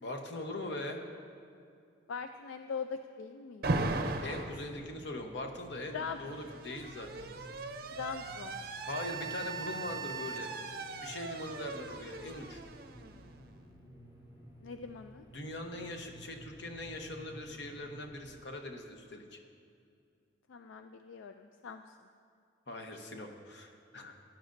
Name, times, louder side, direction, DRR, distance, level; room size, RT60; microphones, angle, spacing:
voice 1, 0.0-1.0 4.2-7.3 8.8-10.5 11.0-12.6 15.3-19.4 22.7-24.1, left 1 dB, 65° left, 3 dB, 1.0 m, -41 dB
voice 2, 2.1-3.7 5.9-6.3 7.9-8.6 14.6-15.3 20.5-21.8, left 6 dB, 80° left, 7 dB, 0.4 m, -41 dB
Alarm, 3.6-4.6 5.8-13.5, right 3 dB, 50° right, 0.5 m, -38 dB
sound 1, 3.8-18.3, equal, 45° left, 2.5 m, -54 dB
17.0 x 10.5 x 2.6 m, 2.4 s
head